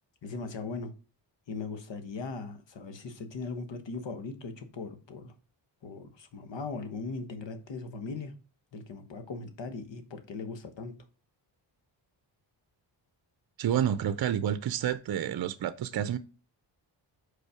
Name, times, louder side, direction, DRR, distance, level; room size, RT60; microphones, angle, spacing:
voice 1, 0.2-0.9 1.5-5.3 5.8-8.3 8.7-10.9, left 4 dB, 70° left, 1.3 m, -39 dB
voice 2, 13.6-16.2, right 10 dB, 55° right, 0.6 m, -29 dB
5.3 x 4.1 x 4.9 m
cardioid pair, 75°, 46 cm